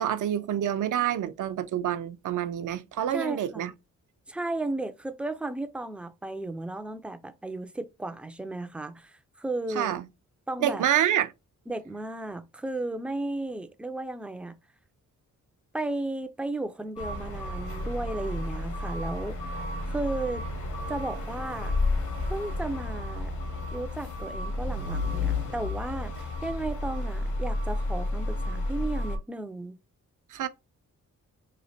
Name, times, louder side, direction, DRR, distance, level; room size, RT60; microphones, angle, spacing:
voice 1, 0.0-3.7 9.7-10.1 10.6-11.3 30.3-30.5, right 10 dB, 75° right, 0.6 m, -27 dB
voice 2, 3.1-3.7 4.3-10.0 10.5-10.8 11.7-14.6 15.7-19.6 19.9-20.4 20.9-21.7 22.2-23.3 23.7-29.8, right 2 dB, 5° right, 0.3 m, -34 dB
sound 1, 17.0-29.2, left 2 dB, 70° left, 1.2 m, -31 dB
3.1 x 2.8 x 4.1 m
wide cardioid pair, 140°, 31 cm